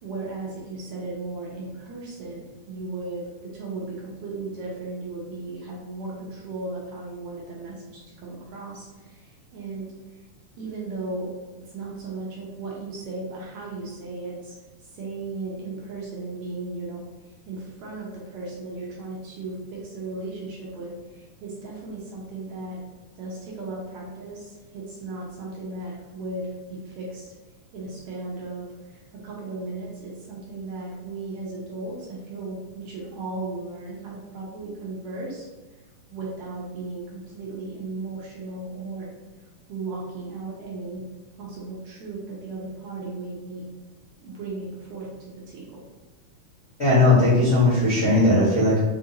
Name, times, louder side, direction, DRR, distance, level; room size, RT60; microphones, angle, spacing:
voice 1, 0.0-3.3 3.5-7.8 8.2-9.9 10.1-10.3 10.6-11.3 11.6-19.6 19.8-22.8 23.2-27.3 27.7-35.5 36.1-39.1 39.7-41.0 41.4-43.6 44.2-45.8, right 3 dB, 75° right, -5 dB, 1.8 m, -36 dB
voice 2, 46.8-48.8, left 2 dB, 70° left, -10 dB, 0.7 m, -18 dB
5.5 x 2.5 x 2.8 m, 1.2 s
omnidirectional pair, 3.7 m